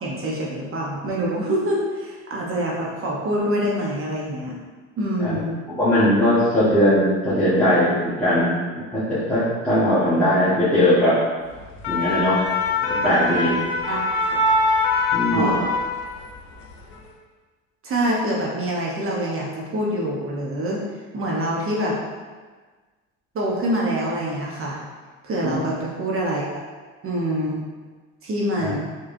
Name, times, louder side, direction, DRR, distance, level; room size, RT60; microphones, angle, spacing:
voice 1, 0.0-4.5 5.0-5.5 13.9-14.0 15.3-15.6 17.8-20.8 21.1-22.0 23.3-24.8 25.2-26.6 27.0-27.6 28.2-28.8, right 1 dB, 40° right, -3 dB, 0.9 m, -25 dB
voice 2, 5.7-11.1 11.9-12.4 12.9-13.6 15.1-15.5 25.4-25.6 28.6-28.7, left 1 dB, 5° left, -14 dB, 1.4 m, -20 dB
sound 1, 11.6-16.4 16.7-17.0, left 3 dB, 70° left, 0.8 m, -23 dB
4.8 x 3.0 x 2.6 m, 1.4 s
supercardioid pair, 85°, 35 cm